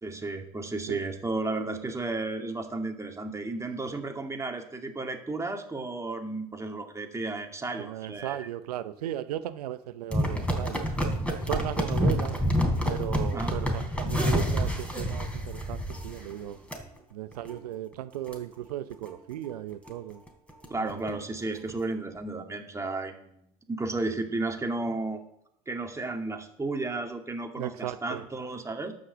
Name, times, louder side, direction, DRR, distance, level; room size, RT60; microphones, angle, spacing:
voice 1, 0.0-8.5 13.3-13.5 20.7-23.4 23.7-25.2 25.7-28.9, right 2 dB, 15° right, 3 dB, 2.2 m, -33 dB
voice 2, 7.8-10.8 11.5-12.4 12.8-16.6 17.1-20.2 20.8-21.0 27.6-28.2, right 12 dB, 85° right, 11 dB, 0.7 m, -36 dB
sound 1, 10.1-16.3 16.7-16.8 17.3-17.5 17.9-18.0 18.3-18.4 18.9-19.1 19.5-19.6 19.9-20.0 20.3-21.1 21.7-21.8, equal, 5° left, 3.7 m, -28 dB
11.5 x 6.4 x 7.3 m, 0.76 s
hypercardioid pair, 70°, 19 cm